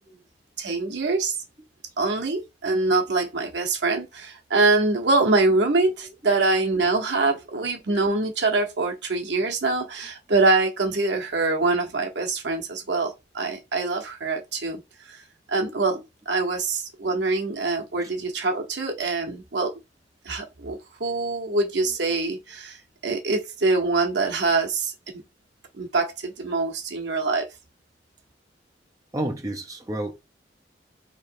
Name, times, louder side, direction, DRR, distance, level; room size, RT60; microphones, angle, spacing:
voice 1, 0.6-1.3 2.0-14.8 15.1-15.2 15.5-19.7 20.2-22.8 23.0-24.9 25.8-27.5, right 3 dB, 80° right, 1.0 m, -24 dB
voice 2, 29.1-30.1, right 1 dB, 20° right, 0.6 m, -31 dB
3.1 x 3.0 x 4.6 m
head